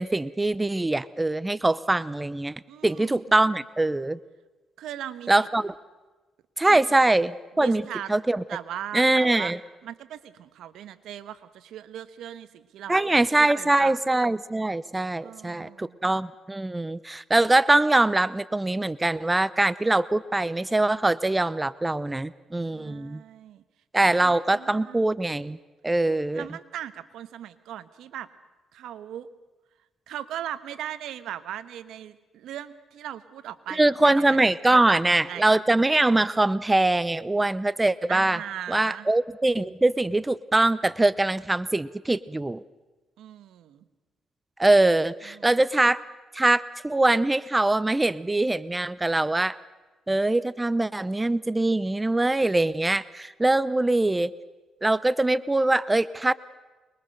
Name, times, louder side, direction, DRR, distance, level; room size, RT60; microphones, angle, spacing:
voice 1, 0.0-2.5 2.8-4.2 5.3-5.7 6.6-7.8 8.1-8.4 8.9-9.6 12.9-23.2 23.9-25.6 25.8-26.4 33.7-38.4 38.7-42.6 44.6-46.0 46.3-49.6 50.1-54.3 54.8-56.3, right 2 dB, 15° right, 17 dB, 0.6 m, -23 dB
voice 2, 2.7-3.3 4.8-5.5 6.6-6.9 7.6-8.1 8.5-9.5 9.8-14.0 15.2-16.0 22.7-23.6 24.0-25.0 26.3-28.3 28.7-29.3 30.1-34.4 34.7-35.5 38.1-39.1 43.2-43.8 45.3-45.5, right 11 dB, 80° right, 13 dB, 1.2 m, -39 dB
24.5 x 21.5 x 6.6 m, 1.2 s
cardioid pair, 90°, 0 cm